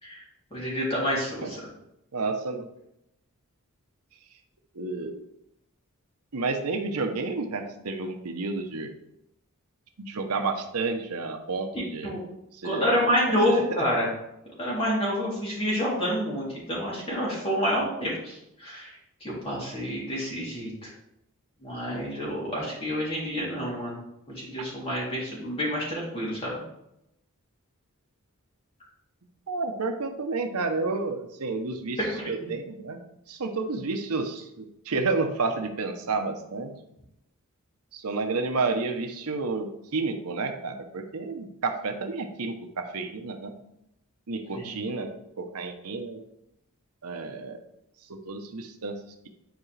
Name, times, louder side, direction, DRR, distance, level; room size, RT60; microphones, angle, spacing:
voice 1, 0.5-1.6 11.7-12.2 12.6-14.1 14.6-20.9 21.6-24.0 24.3-26.6 32.1-32.3 44.5-44.7, equal, 25° left, -5 dB, 3.0 m, -28 dB
voice 2, 2.1-2.7 4.7-5.2 6.3-8.9 10.0-12.2 12.5-13.6 29.5-33.0 33.3-36.7 37.9-43.6 44.3-46.2 47.0-47.6 48.1-49.0, right 3 dB, 80° right, 5 dB, 0.8 m, -31 dB
10.5 x 4.8 x 3.3 m, 0.81 s
head